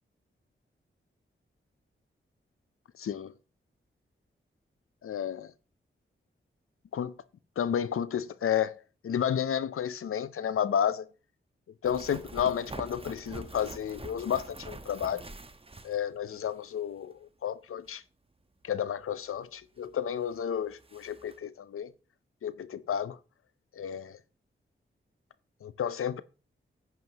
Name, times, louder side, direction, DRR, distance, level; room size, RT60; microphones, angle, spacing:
voice 1, 3.0-3.3 5.0-5.5 6.9-7.2 7.6-11.1 11.8-15.2 15.8-18.0 18.6-21.9 22.4-23.2 23.7-24.2 25.6-26.2, left 9 dB, 85° left, 0.6 m, -31 dB
sound 1, 11.8-16.5 16.8-16.9 19.8-19.9 20.3-20.4 20.7-21.4, right 2 dB, 25° right, 1.1 m, -44 dB
10.5 x 9.4 x 2.9 m
cardioid pair, 55°, 21 cm